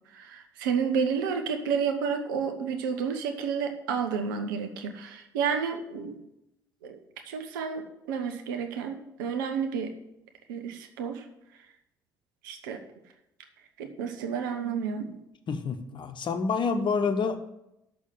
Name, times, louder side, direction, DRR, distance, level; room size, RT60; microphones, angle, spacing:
voice 1, 0.1-6.2 6.8-7.0 7.3-9.9 10.5-11.2 12.4-12.8 13.8-15.1, right 6 dB, 80° right, 6 dB, 0.9 m, -30 dB
voice 2, 15.5-17.4, left 5 dB, 50° left, 8 dB, 1.0 m, -28 dB
6.4 x 6.1 x 7.4 m, 0.85 s
hypercardioid pair, 50°, 11 cm